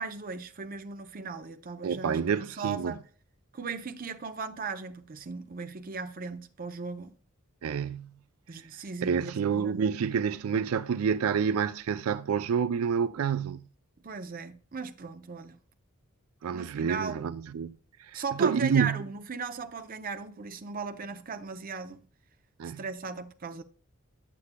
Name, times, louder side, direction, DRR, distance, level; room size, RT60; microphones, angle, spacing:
voice 1, 0.0-3.0 3.5-7.1 8.5-9.8 14.0-15.6 16.5-17.2 18.1-22.0 22.6-23.6, right 5 dB, 40° right, 0.6 m, -37 dB
voice 2, 1.8-2.9 7.6-8.1 8.6-8.7 9.0-13.6 16.4-19.0 22.6-22.8, right 7 dB, 85° right, 0.4 m, -28 dB
8.3 x 8.3 x 2.2 m
head